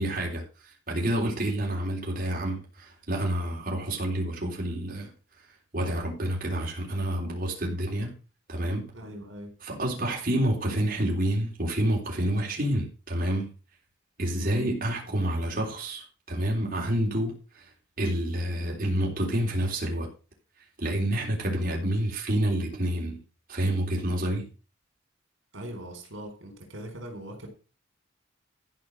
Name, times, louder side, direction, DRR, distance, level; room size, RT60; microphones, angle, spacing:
voice 1, 0.0-5.1 5.7-8.1 8.5-8.9 9.6-13.5 14.2-17.7 18.0-20.1 20.8-23.2 23.5-24.5, right 1 dB, 45° right, 3.6 m, -28 dB
voice 2, 8.9-9.5 14.4-14.7 25.5-27.5, equal, 75° right, 4.3 m, -40 dB
13.5 x 6.0 x 6.3 m
head